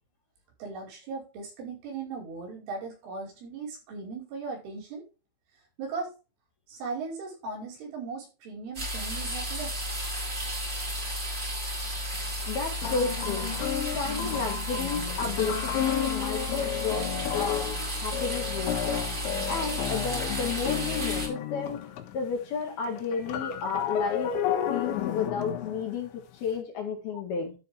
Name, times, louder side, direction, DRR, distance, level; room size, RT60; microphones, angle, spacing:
voice 1, 0.6-5.1 5.8-6.1 6.7-9.8 23.8-23.9, right 4 dB, 75° right, -3 dB, 7.6 m, -38 dB
sound 1, 8.7-21.3, equal, 20° right, 3.7 m, -33 dB
sound 2, 11.9-12.0 12.8-22.3 22.6-26.5, left 10 dB, 75° left, 3.4 m, -32 dB
voice 2, 12.4-13.5 13.9-27.5, left 5 dB, 55° left, 2 dB, 3.6 m, -32 dB
12.5 x 7.6 x 3.6 m, 0.31 s
omnidirectional pair, 5.7 m